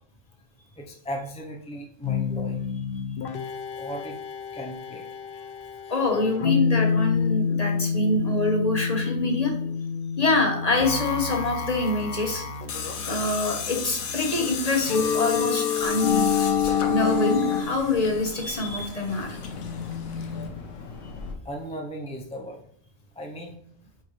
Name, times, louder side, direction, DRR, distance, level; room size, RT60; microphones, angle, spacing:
voice 1, 0.8-2.6 3.8-4.1 4.5-5.4 5.8-5.9 21.4-22.6 23.2-23.5, equal, 5° left, 0 dB, 0.5 m, -37 dB
sound 1, 2.0-17.6, left 6 dB, 55° left, 0.7 m, -28 dB
voice 2, 5.9-9.7 10.2-12.4 13.1-16.3 16.9-19.4, left 2 dB, 30° left, 2 dB, 1.3 m, -25 dB
Tools, 12.7-20.5, left 6 dB, 90° left, 1.3 m, -34 dB
sound 2, 15.8-21.4, left 3 dB, 70° left, 1.3 m, -42 dB
8.5 x 4.5 x 3.2 m, 0.68 s
omnidirectional pair, 1.4 m